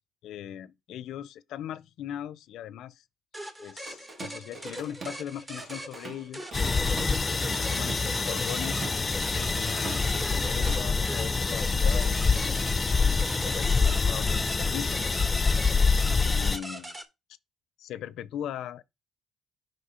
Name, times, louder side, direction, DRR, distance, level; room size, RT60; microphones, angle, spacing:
voice 1, 0.2-3.0 3.6-6.5 7.2-13.2 13.4-15.2 16.0-17.0 17.8-18.8, left 10 dB, 80° left, 0.4 m, -39 dB
sound 1, 3.3-17.0, right 1 dB, 25° right, 1.2 m, -41 dB
Drum kit / Drum, 3.9-5.2 5.6-11.2, right 4 dB, 55° right, 1.5 m, -43 dB
sound 2, 6.5-16.6, left 4 dB, 30° left, 0.5 m, -26 dB
5.3 x 3.6 x 5.5 m
cardioid pair, 90°, 0 cm